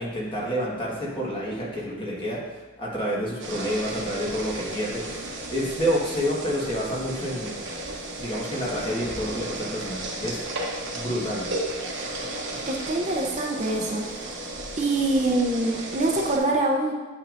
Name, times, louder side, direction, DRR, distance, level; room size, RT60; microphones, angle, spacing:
voice 1, 0.0-2.4 2.8-5.2 5.5-7.5 8.2-10.4 10.9-11.5, equal, 25° left, -5 dB, 1.6 m, -28 dB
sound 1, 3.4-16.4, right 2 dB, 60° right, 1.2 m, -34 dB
voice 2, 12.7-14.3 14.8-16.9, right 2 dB, 35° right, 0 dB, 0.7 m, -25 dB
9.1 x 6.0 x 2.6 m, 1.3 s
head